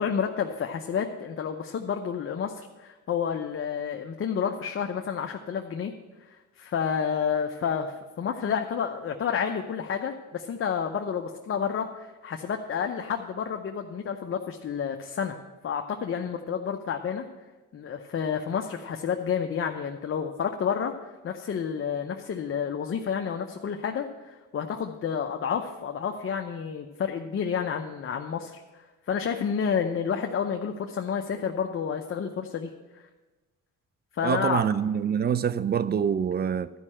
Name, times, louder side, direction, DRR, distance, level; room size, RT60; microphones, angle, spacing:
voice 1, 0.0-5.9 6.6-17.2 17.7-28.6 29.1-32.7 34.2-34.7, left 7 dB, 45° left, 0.7 m, -30 dB
voice 2, 34.2-36.7, right 7 dB, 35° right, 0.5 m, -25 dB
12.0 x 5.4 x 7.4 m
cardioid pair, 90°, 30 cm